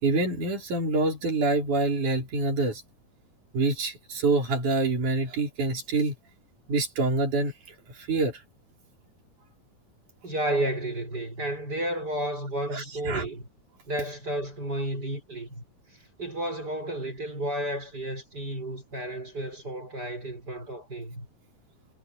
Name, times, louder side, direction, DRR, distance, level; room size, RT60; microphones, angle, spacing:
voice 1, 0.0-2.8 3.5-6.1 6.7-7.5 8.1-8.4 12.7-13.3, right 3 dB, 80° right, 5.9 m, -26 dB
voice 2, 10.2-13.5 13.9-15.6 16.2-21.3, right 1 dB, 30° right, 6.5 m, -32 dB
omnidirectional pair, 3.5 m